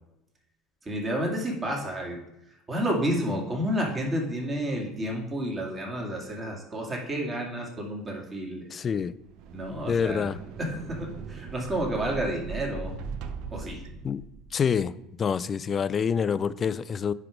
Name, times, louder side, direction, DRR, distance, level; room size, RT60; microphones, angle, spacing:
voice 1, 0.9-2.2 2.7-8.7 9.5-10.3 10.6-12.9 13.5-13.8, equal, 25° right, -1 dB, 2.2 m, -30 dB
voice 2, 8.7-9.1 9.9-10.4 14.0-14.2 14.5-14.9 15.2-17.1, left 7 dB, 35° left, 17 dB, 0.3 m, -26 dB
sound 1, 9.1-14.8, right 5 dB, 65° right, 0.6 m, -39 dB
9.7 x 3.3 x 5.1 m, 0.88 s
supercardioid pair, 95°, 0 cm